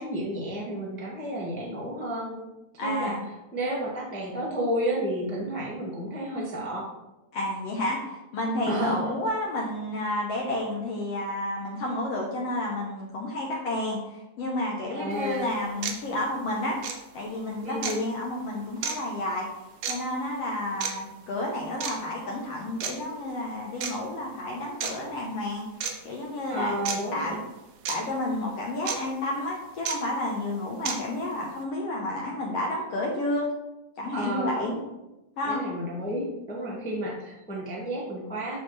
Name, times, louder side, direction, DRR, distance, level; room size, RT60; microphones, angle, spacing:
voice 1, 0.0-2.4 2.8-3.1 3.5-6.9 8.6-9.0 14.9-15.5 17.6-18.1 26.5-27.4 34.1-34.8 35.4-38.6, right 1 dB, 10° left, -4 dB, 0.4 m, -31 dB
voice 2, 2.8-3.3 7.3-16.8 17.1-19.5 19.9-25.6 26.1-26.8 27.1-27.4 27.9-33.5 34.0-34.7 35.4-35.6 36.6-36.9, left 1 dB, 65° left, -2 dB, 1.9 m, -31 dB
sound 1, 15.1-15.2 15.8-16.0 16.8-17.0 17.8-18.0 18.8-19.0 19.8-20.0 20.8-20.9 21.8-22.0 22.8-22.9 23.8-23.9 24.8-24.9 25.8-25.9 26.9-27.0 27.9-28.0 28.9-29.0 29.9-30.0 30.9-31.0, right 7 dB, 75° right, 2.1 m, -30 dB
12.5 x 4.2 x 3.2 m, 0.98 s
omnidirectional pair, 3.3 m